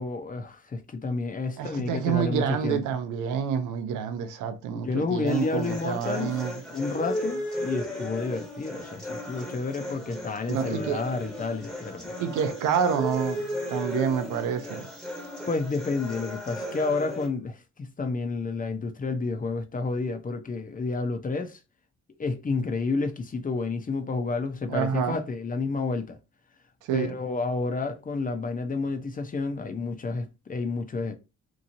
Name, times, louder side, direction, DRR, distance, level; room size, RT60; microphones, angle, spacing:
voice 1, 0.0-2.8 4.7-6.4 6.7-12.1 15.5-21.6 22.2-26.2 26.9-31.1, left 3 dB, 30° left, 0.6 m, -30 dB
voice 2, 1.6-6.6 10.5-11.0 12.2-14.9 24.7-25.2 26.9-27.1, right 8 dB, 85° right, 0.6 m, -28 dB
sound 1, 5.3-17.3, left 1 dB, ahead, 1.0 m, -35 dB
3.0 x 2.6 x 2.6 m
cardioid pair, 90°, 30 cm